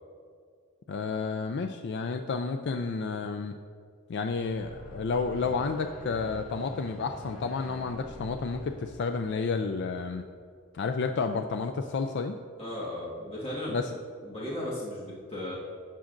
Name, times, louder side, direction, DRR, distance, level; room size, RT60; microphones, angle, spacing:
voice 1, 0.9-3.6 4.1-10.2 10.7-12.4 13.7-13.9, left 4 dB, 55° left, 6 dB, 0.4 m, -31 dB
sound 1, 4.2-10.5, equal, 85° left, 1.8 m, -46 dB
voice 2, 12.6-13.8 14.2-15.6, left 1 dB, 25° left, -6 dB, 1.5 m, -36 dB
13.0 x 8.4 x 2.6 m, 2.1 s
head